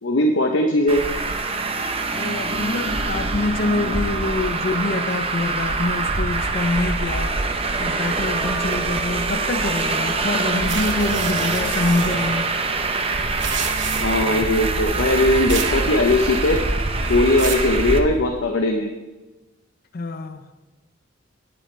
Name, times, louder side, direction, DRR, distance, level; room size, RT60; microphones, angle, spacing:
voice 1, 0.0-1.1 14.0-16.6 17.1-18.9, left 1 dB, 80° left, 0.9 m, -19 dB
Traffic noise roadway noise, 0.9-18.0, right 3 dB, 30° right, 0.8 m, -24 dB
voice 2, 2.1-7.3 7.8-12.5 19.9-20.5, left 2 dB, 50° left, 0.5 m, -25 dB
sound 1, 10.7-12.3 13.2-14.3 15.5-15.8 16.1-16.6 17.1-17.7, right 7 dB, 75° right, 1.1 m, -30 dB
17.5 x 8.6 x 3.3 m
head